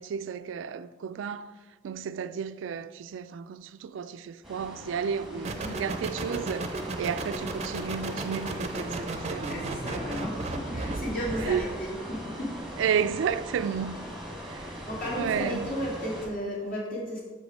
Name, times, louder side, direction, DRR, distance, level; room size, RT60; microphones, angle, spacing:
voice 1, 0.0-1.5 1.8-6.7 7.0-9.9 11.4-11.7 12.8-14.0 14.4-14.8 15.2-15.7, right 7 dB, 85° right, 0.3 m, -32 dB
sound 1, 4.4-16.3, equal, ahead, 1.3 m, -40 dB
voice 2, 5.3-5.8 9.5-12.7 13.9-14.1 14.6-17.2, equal, 45° left, 2.4 m, -34 dB
sound 2, 5.4-11.8, right 2 dB, 35° right, 0.5 m, -35 dB
6.4 x 5.2 x 5.0 m
head